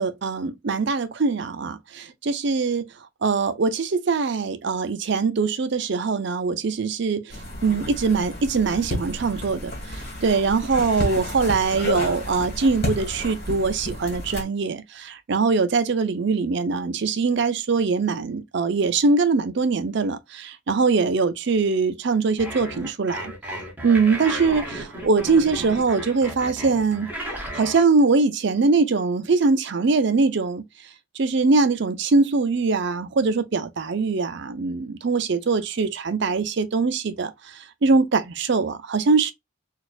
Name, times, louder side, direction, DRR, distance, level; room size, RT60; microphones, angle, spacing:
voice 1, 0.0-2.9 3.2-7.3 7.6-23.3 23.8-27.1 27.5-30.6 31.2-37.3 37.8-39.3, right 4 dB, 55° right, 0.5 m, -22 dB
sound 1, 7.3-14.4, left 1 dB, 45° left, 1.7 m, -31 dB
sound 2, 22.4-27.8, right 1 dB, 10° right, 0.9 m, -34 dB
4.1 x 2.4 x 2.4 m
head